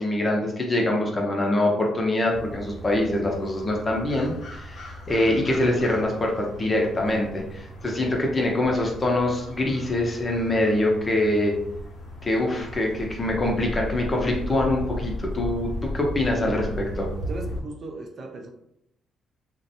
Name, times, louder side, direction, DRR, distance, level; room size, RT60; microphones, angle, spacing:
voice 1, 0.0-11.5 12.2-17.1, left 1 dB, 30° left, 0 dB, 0.6 m, -24 dB
sound 1, 2.3-17.6, equal, 70° left, 0.8 m, -36 dB
voice 2, 17.3-18.5, right 2 dB, 50° right, 3 dB, 0.4 m, -36 dB
2.5 x 2.1 x 2.7 m, 0.77 s
cardioid pair, 90°, 0 cm